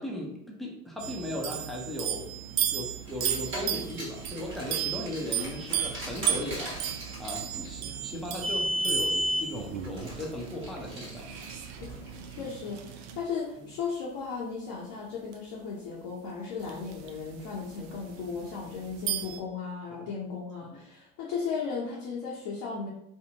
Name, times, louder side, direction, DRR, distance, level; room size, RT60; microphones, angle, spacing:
voice 1, 0.0-2.3 2.7-11.3 13.6-13.7, left 1 dB, ahead, -3 dB, 0.6 m, -37 dB
sound 1, 1.0-13.2 15.3-15.4 16.6-19.4, right 10 dB, 60° right, 0.5 m, -35 dB
Car, 3.0-12.5, equal, 25° right, 1.2 m, -35 dB
voice 2, 12.4-22.9, left 5 dB, 45° left, -5 dB, 0.7 m, -36 dB
2.6 x 2.0 x 2.8 m, 0.81 s
hypercardioid pair, 65°, 43 cm